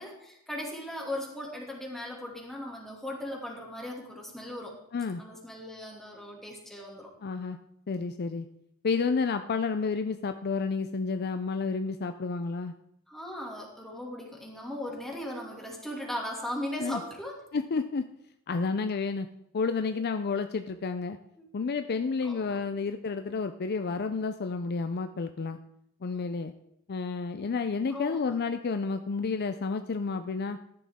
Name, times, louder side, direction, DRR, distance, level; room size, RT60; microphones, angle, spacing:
voice 1, 0.0-4.7 5.2-7.1 13.1-17.4 21.4-21.5 22.2-22.6 27.9-28.2, left 1 dB, ahead, -2 dB, 2.4 m, -38 dB
voice 2, 7.2-7.6 7.9-8.5 8.8-12.7 16.8-17.0 17.5-18.0 18.5-19.3 19.5-21.2 21.5-25.6 26.0-26.5 26.9-30.6, left 4 dB, 45° left, 9 dB, 0.5 m, -30 dB
13.5 x 11.0 x 3.6 m, 0.77 s
head